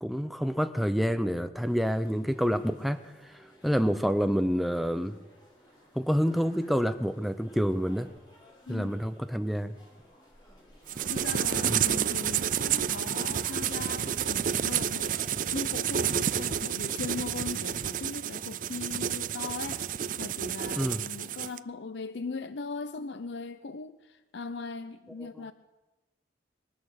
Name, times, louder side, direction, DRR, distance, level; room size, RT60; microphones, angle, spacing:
voice 1, 0.0-3.0 3.6-5.2 5.9-8.1 8.7-9.7 11.7-11.8 20.8-21.0, equal, ahead, 9 dB, 0.7 m, -27 dB
sound 1, 1.6-15.3, equal, 25° left, 5.6 m, -54 dB
voice 2, 8.7-9.0 11.1-15.2 15.5-19.8 20.2-25.5, left 4 dB, 75° left, 12 dB, 0.6 m, -39 dB
sound 2, 10.9-21.6, right 9 dB, 45° right, 0.4 m, -30 dB
23.5 x 8.7 x 6.6 m, 1.1 s
head